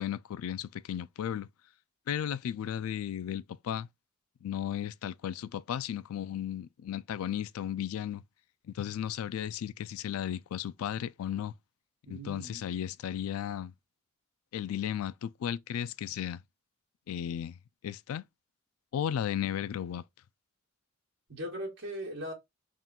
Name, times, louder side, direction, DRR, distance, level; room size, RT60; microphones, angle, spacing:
voice 1, 0.0-1.5 2.1-3.9 4.4-8.2 8.7-11.5 12.1-13.7 14.5-16.4 17.1-17.6 17.8-18.2 18.9-20.0, left 9 dB, 80° left, 0.3 m, -35 dB
voice 2, 12.0-12.7 21.3-22.3, equal, 65° right, 1.8 m, -39 dB
3.8 x 2.3 x 4.1 m
head